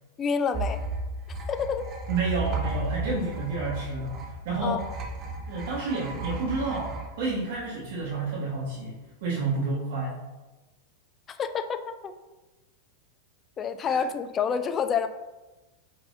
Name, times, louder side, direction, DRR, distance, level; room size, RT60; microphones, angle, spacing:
voice 1, 0.2-0.8 1.5-1.9 4.6-4.8 11.3-12.1 13.6-15.1, left 6 dB, 25° left, 9 dB, 0.3 m, -28 dB
sound 1, 0.5-8.1, right 2 dB, 30° right, 0.5 m, -34 dB
voice 2, 2.1-4.1 4.4-4.8 5.5-10.2 13.8-14.0, right 3 dB, 50° right, -6 dB, 0.9 m, -30 dB
4.7 x 3.8 x 2.5 m, 1.1 s
figure-of-eight pair, 90°, 0 cm